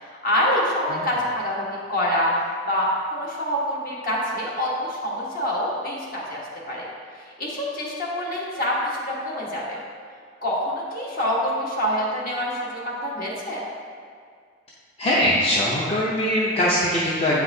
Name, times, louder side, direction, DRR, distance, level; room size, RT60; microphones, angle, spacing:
voice 1, 0.2-2.3 2.7-6.4 6.7-6.9 7.4-9.8 10.4-13.6, equal, 50° left, -4 dB, 1.3 m, -26 dB
voice 2, 15.0-17.4, left 1 dB, 35° left, -6 dB, 0.6 m, -21 dB
8.2 x 5.8 x 2.7 m, 2.1 s
head